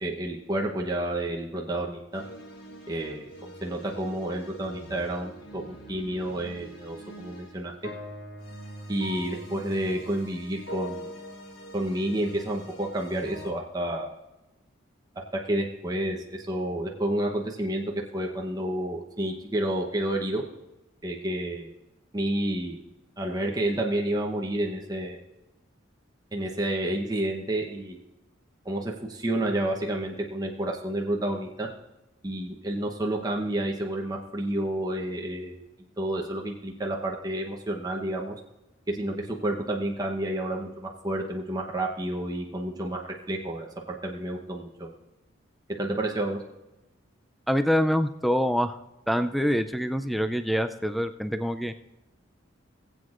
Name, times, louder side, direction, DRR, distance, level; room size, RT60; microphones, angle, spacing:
voice 1, 0.0-2.2 2.9-3.3 3.6-7.7 8.9-11.1 11.7-14.2 15.3-20.4 21.0-21.7 22.1-22.8 23.2-25.2 26.3-28.0 28.6-31.7 32.2-35.6 36.0-38.3 38.9-43.0 43.3-44.9 45.8-46.4, right 1 dB, 20° right, -1 dB, 0.9 m, -30 dB
sound 1, 2.1-13.5, equal, 50° left, 1.7 m, -43 dB
voice 2, 47.5-48.7 49.1-51.7, equal, ahead, 9 dB, 0.3 m, -25 dB
20.0 x 7.9 x 2.5 m, 0.98 s
head